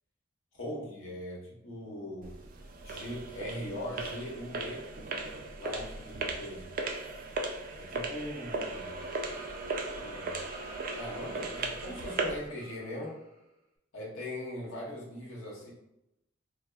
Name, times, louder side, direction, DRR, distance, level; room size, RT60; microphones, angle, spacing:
voice 1, 0.5-2.4 2.8-4.9 5.6-6.7 7.8-9.0 10.0-10.4 11.0-13.2 13.9-15.7, left 1 dB, 80° left, -3 dB, 1.0 m, -40 dB
sound 1, 2.2-12.5, right 3 dB, 45° right, 0.3 m, -37 dB
Laughter, 8.5-13.4, equal, 30° left, 0.6 m, -50 dB
3.9 x 2.0 x 2.3 m, 0.85 s
head